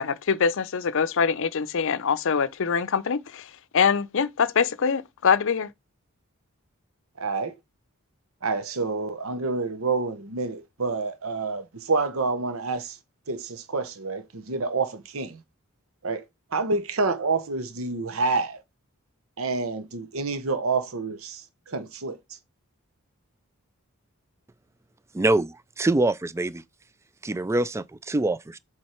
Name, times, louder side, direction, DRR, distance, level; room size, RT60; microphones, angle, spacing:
voice 1, 0.0-5.7, left 6 dB, 65° left, 0.5 m, -24 dB
voice 2, 7.2-7.5 8.4-13.0 13.3-15.4 16.0-16.2 16.5-18.6 19.4-22.2, right 3 dB, 70° right, 0.9 m, -28 dB
voice 3, 25.1-26.6 27.2-28.6, right 2 dB, 15° right, 0.3 m, -24 dB
7.7 x 3.5 x 4.4 m
head